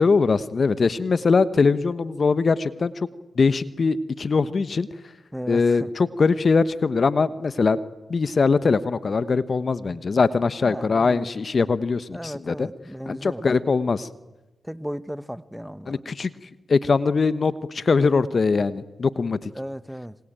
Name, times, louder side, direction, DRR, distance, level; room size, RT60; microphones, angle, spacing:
voice 1, 0.0-3.1 3.4-4.9 5.5-7.8 8.1-12.7 13.1-14.1 15.9-16.3 16.7-19.5, left 4 dB, 55° left, 1.2 m, -21 dB
voice 2, 5.3-5.9 9.9-10.0 10.6-11.3 12.1-13.5 14.6-16.0 19.5-20.2, equal, 5° right, 1.2 m, -35 dB
25.5 x 23.5 x 9.1 m
supercardioid pair, 40°, 0 cm